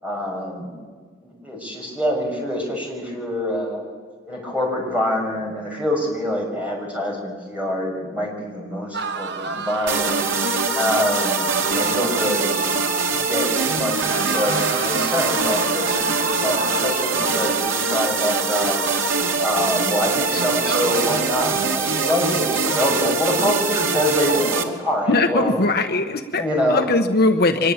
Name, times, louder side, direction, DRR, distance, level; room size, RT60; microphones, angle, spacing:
voice 1, 0.0-0.7 1.2-3.8 4.3-8.9 9.1-10.1 10.7-12.5 13.1-18.8 19.4-25.6 26.3-26.9, left 1 dB, 5° right, -1 dB, 6.3 m, -25 dB
sound 1, 8.9-13.6 13.9-19.8 20.3-21.7, right 4 dB, 55° right, 1.0 m, -31 dB
sound 2, 9.9-24.6, right 4 dB, 80° right, 2.6 m, -23 dB
voice 2, 25.1-27.7, left 2 dB, 50° left, 6 dB, 1.0 m, -20 dB
24.5 x 21.0 x 8.8 m, 1.5 s
head